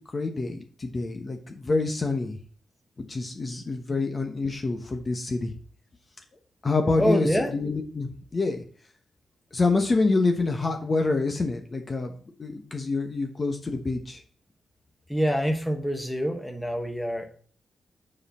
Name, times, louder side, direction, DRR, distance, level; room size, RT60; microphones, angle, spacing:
voice 1, 0.0-2.4 3.1-5.5 6.6-8.6 9.5-12.1 12.4-14.2, left 3 dB, 35° left, 3 dB, 1.1 m, -27 dB
voice 2, 7.0-7.5 15.1-17.3, equal, 5° left, 4 dB, 1.3 m, -26 dB
7.0 x 5.5 x 4.2 m, 0.43 s
cardioid pair, 95°, 0 cm